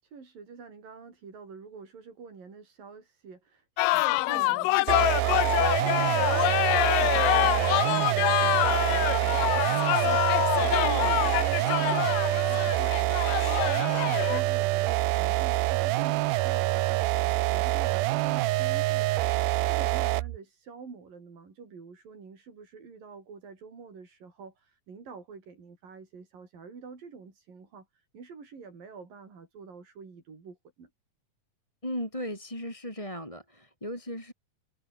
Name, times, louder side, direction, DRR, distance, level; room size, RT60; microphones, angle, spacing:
voice 1, 0.0-30.9, right 5 dB, 65° right, 7.0 m, -47 dB
sound 1, 3.8-14.4, left 21 dB, 80° left, 2.1 m, -26 dB
sound 2, 4.9-20.4, right 19 dB, 85° right, 2.6 m, -26 dB
voice 2, 31.8-34.3, equal, 10° left, 6.5 m, -36 dB
omnidirectional pair, 4.2 m